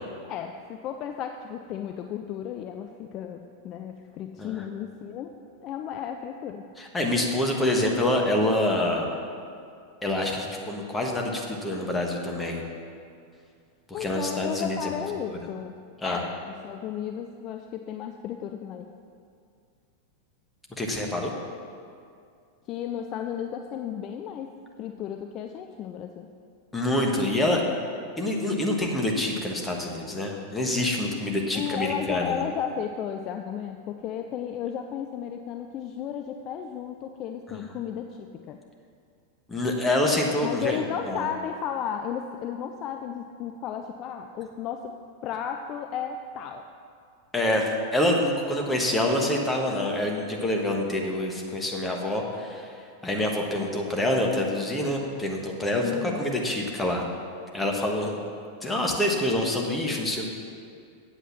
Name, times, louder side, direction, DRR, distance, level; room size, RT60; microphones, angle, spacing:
voice 1, 0.3-5.3 5.6-6.7 13.9-15.7 16.0-16.3 16.6-18.9 22.7-26.3 31.1-31.3 31.5-38.6 40.4-45.0 45.2-46.7 53.6-53.7 55.8-56.3, left 8 dB, 35° left, 5 dB, 0.4 m, -34 dB
voice 2, 6.8-9.2 10.0-12.6 13.9-14.9 15.3-15.4 16.0-16.2 20.8-21.3 26.7-27.6 28.2-32.4 37.5-37.6 39.5-40.8 41.0-41.2 47.3-52.7 53.0-57.0 57.5-58.2 58.6-60.3, left 1 dB, 10° left, 0 dB, 1.4 m, -26 dB
8.1 x 8.1 x 5.8 m, 2.3 s
figure-of-eight pair, 90°, 0 cm